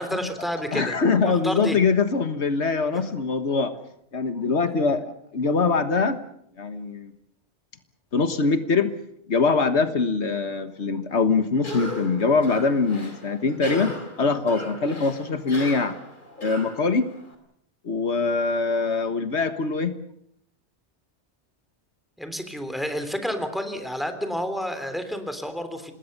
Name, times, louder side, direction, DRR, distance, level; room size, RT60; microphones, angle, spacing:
voice 1, 0.0-0.9 1.3-1.8 2.9-3.0 22.2-25.9, equal, ahead, 8 dB, 3.3 m, -30 dB
voice 2, 0.7-3.7 4.1-5.0 5.3-6.2 6.6-7.1 8.1-8.9 9.3-15.9 16.4-17.1 17.8-20.0, left 4 dB, 80° left, 10 dB, 1.8 m, -23 dB
Cough, 11.6-17.3, left 1 dB, 45° left, 3.7 m, -38 dB
27.0 x 20.5 x 6.8 m, 0.70 s
omnidirectional pair, 1.2 m